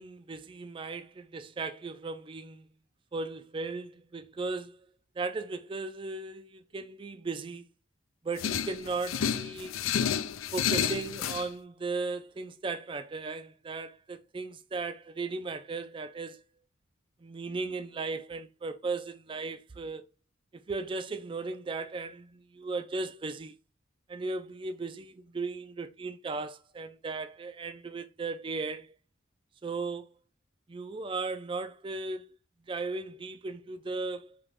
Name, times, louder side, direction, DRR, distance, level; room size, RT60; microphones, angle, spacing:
voice 1, 0.0-2.7 3.1-4.8 5.2-7.7 8.2-9.7 10.5-16.4 17.2-20.0 20.5-23.5 24.1-28.9 29.6-30.1 30.7-32.2 32.7-34.4, right 3 dB, 25° right, 0.3 m, -36 dB
sound 1, 8.4-11.5, left 8 dB, 85° left, 0.4 m, -30 dB
5.2 x 2.9 x 3.5 m
head